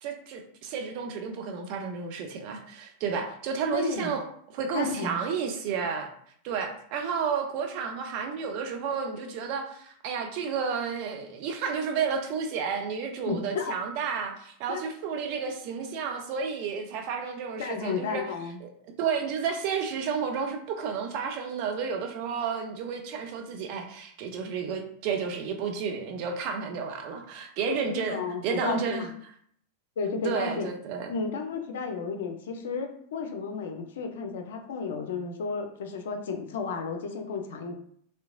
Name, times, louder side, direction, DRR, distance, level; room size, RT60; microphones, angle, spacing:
voice 1, 0.0-4.2 4.5-6.1 6.4-18.2 18.6-18.7 19.0-28.2 28.4-29.1 30.2-31.1, right 6 dB, 45° right, 4 dB, 0.4 m, -31 dB
voice 2, 3.7-4.1 4.7-5.2 13.3-13.7 14.7-14.9 17.6-18.6 27.7-29.1 30.0-30.7 31.1-37.8, left 5 dB, 60° left, 5 dB, 0.4 m, -33 dB
2.8 x 2.1 x 2.5 m, 0.64 s
figure-of-eight pair, 90°, 0 cm